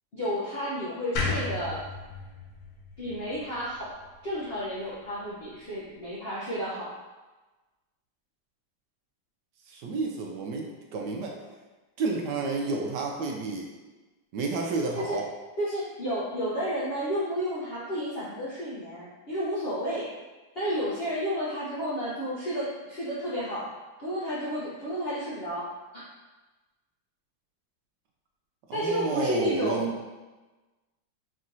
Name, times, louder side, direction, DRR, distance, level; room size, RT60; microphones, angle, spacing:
voice 1, 0.1-1.8 3.0-3.9 4.2-6.9 14.9-15.2 15.6-20.1 20.5-23.7 24.0-26.0 28.7-29.8, equal, 55° left, -9 dB, 0.6 m, -31 dB
sound 1, 1.2-4.3, left 3 dB, 85° left, 1.4 m, -34 dB
voice 2, 9.7-11.4 12.0-13.7 14.3-15.2 28.7-29.9, right 3 dB, 75° right, 0 dB, 1.1 m, -30 dB
4.3 x 3.6 x 2.6 m, 1.2 s
omnidirectional pair, 2.0 m